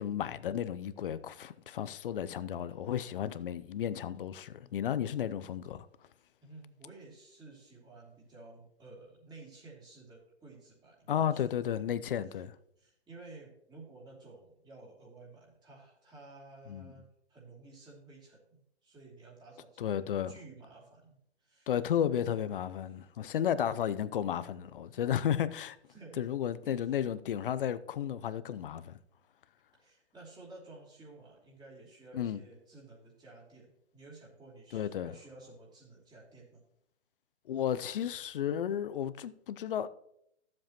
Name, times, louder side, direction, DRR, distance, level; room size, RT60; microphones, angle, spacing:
voice 1, 0.0-5.9 11.1-12.6 16.7-16.9 19.8-20.3 21.7-25.8 26.2-29.0 32.1-32.4 34.7-35.1 37.5-39.9, left 9 dB, 50° left, 0.7 m, -33 dB
voice 2, 6.4-11.5 12.3-12.4 12.8-21.8 22.2-22.6 25.9-26.2 26.6-27.0 29.8-36.6, right 3 dB, 10° right, 2.8 m, -53 dB
14.0 x 7.6 x 3.0 m
figure-of-eight pair, 130°, 35 cm